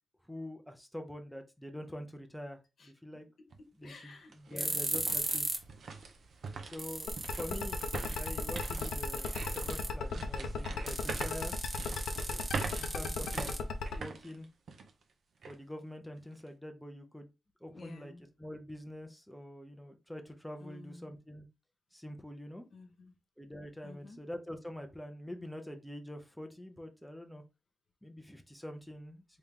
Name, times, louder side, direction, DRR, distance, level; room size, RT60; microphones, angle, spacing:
voice 1, 0.3-2.6 2.8-3.3 3.8-5.5 6.6-7.9 8.2-11.5 12.8-13.5 13.9-14.5 15.5-17.3 17.6-18.1 18.4-21.5 21.9-22.7 23.4-27.4 28.0-29.2, left 1 dB, 5° left, 0.6 m, -45 dB
voice 2, 2.8-5.0 12.3-12.7 17.7-18.3 20.6-21.2 22.7-23.1 23.8-24.2, left 3 dB, 65° left, 1.0 m, -53 dB
sound 1, 3.5-3.6 4.1-15.0 15.4-15.6 16.1-16.5, right 4 dB, 70° right, 0.7 m, -44 dB
sound 2, 4.6-5.7 6.0-6.1 6.5-6.6 6.8-10.0 10.9-14.0, right 2 dB, 35° right, 1.2 m, -38 dB
sound 3, 7.1-14.0, left 6 dB, 90° left, 0.5 m, -36 dB
3.6 x 2.9 x 3.5 m
cardioid pair, 75°, 0 cm